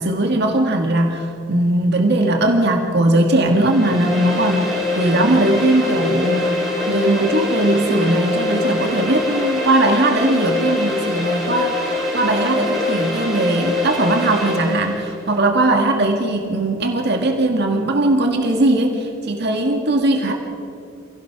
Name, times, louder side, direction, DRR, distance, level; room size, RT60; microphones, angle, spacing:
voice 1, 0.0-20.3, right 1 dB, 55° right, 3 dB, 2.0 m, -19 dB
sound 1, 3.4-15.1, left 2 dB, ahead, 5.1 m, -23 dB
28.0 x 17.0 x 6.1 m, 2.6 s
head